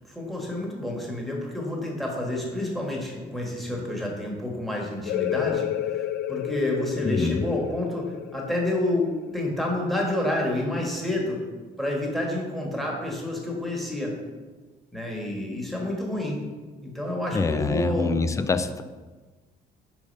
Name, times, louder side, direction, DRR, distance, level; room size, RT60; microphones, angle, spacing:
voice 1, 0.1-11.4 11.8-14.1 14.9-16.4 16.8-18.4, left 1 dB, ahead, -2 dB, 1.5 m, -29 dB
sound 1, 5.1-10.4, left 11 dB, 80° left, 0.5 m, -31 dB
voice 2, 7.0-7.4 17.3-18.8, left 4 dB, 20° left, 12 dB, 0.4 m, -25 dB
5.2 x 5.0 x 5.3 m, 1.3 s
cardioid pair, 110°, 17 cm